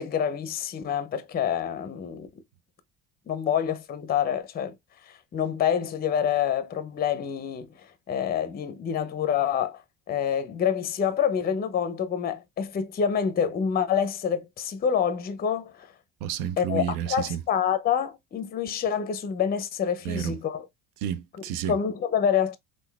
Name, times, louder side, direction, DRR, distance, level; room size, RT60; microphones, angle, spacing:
voice 1, 0.0-2.3 3.3-4.7 5.3-7.7 8.1-9.8 10.1-15.9 16.6-20.7 21.7-22.6, left 8 dB, 25° left, 0.5 m, -27 dB
voice 2, 16.2-17.4 20.0-20.4 21.0-21.8, right 10 dB, 70° right, 0.6 m, -30 dB
3.7 x 2.5 x 2.2 m
hypercardioid pair, 70°, 39 cm